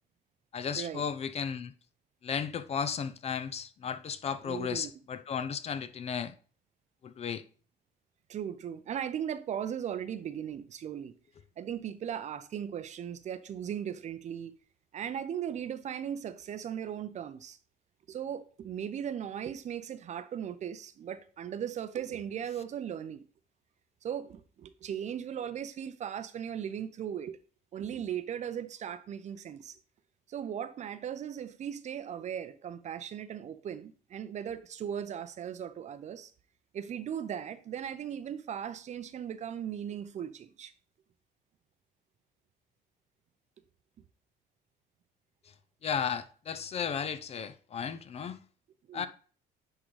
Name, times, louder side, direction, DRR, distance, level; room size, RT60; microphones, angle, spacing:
voice 1, 0.5-1.7 2.2-6.3 7.0-7.4 45.8-48.4 48.9-49.1, left 7 dB, 40° left, 0.5 m, -34 dB
voice 2, 4.4-4.9 8.3-11.2 11.6-14.5 14.9-17.6 18.1-23.2 24.0-27.4 27.7-29.8 30.3-36.3 36.7-40.7 48.9-49.1, right 9 dB, 45° right, 0.6 m, -38 dB
10.0 x 3.8 x 3.2 m
cardioid pair, 125°, 17 cm